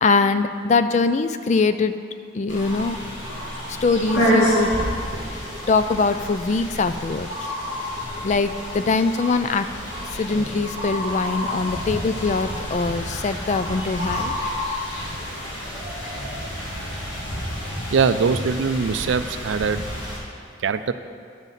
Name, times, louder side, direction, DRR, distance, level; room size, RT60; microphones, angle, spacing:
voice 1, 0.0-1.9 2.3-3.0 3.8-4.7 5.7-7.5 8.2-9.7 10.1-14.3, left 4 dB, 35° left, 10 dB, 0.3 m, -22 dB
sound 1, 2.5-20.2, equal, 75° left, 2.7 m, -28 dB
voice 2, 17.9-19.8 20.6-20.9, right 5 dB, 70° right, 11 dB, 0.4 m, -22 dB
11.5 x 4.0 x 7.4 m, 2.3 s
head